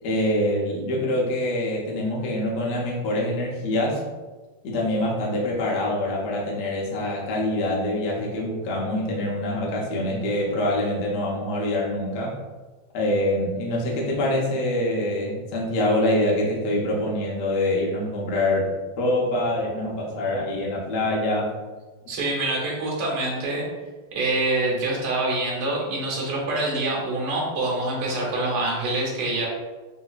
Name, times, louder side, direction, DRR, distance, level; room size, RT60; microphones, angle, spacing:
voice 1, 0.0-4.0 4.6-12.3 12.9-18.7 19.0-21.5, left 1 dB, 65° left, -4 dB, 1.2 m, -25 dB
voice 2, 22.1-23.6 24.1-29.5, right 2 dB, 85° right, -3 dB, 1.8 m, -25 dB
3.9 x 2.6 x 2.3 m, 1.3 s
omnidirectional pair, 2.3 m